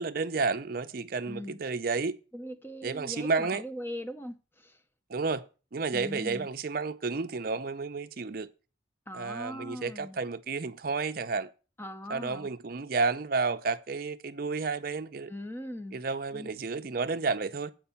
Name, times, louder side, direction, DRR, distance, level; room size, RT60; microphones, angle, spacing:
voice 1, 0.0-2.2 2.8-3.6 5.1-5.5 5.7-8.5 9.1-11.5 12.1-15.3 15.9-17.7, right 4 dB, 50° right, 0.5 m, -31 dB
voice 2, 1.3-1.6 2.3-4.8 5.9-6.5 9.1-10.2 11.8-12.5 15.3-16.0 16.3-16.5, equal, 10° left, 0.6 m, -40 dB
7.9 x 5.4 x 6.9 m
head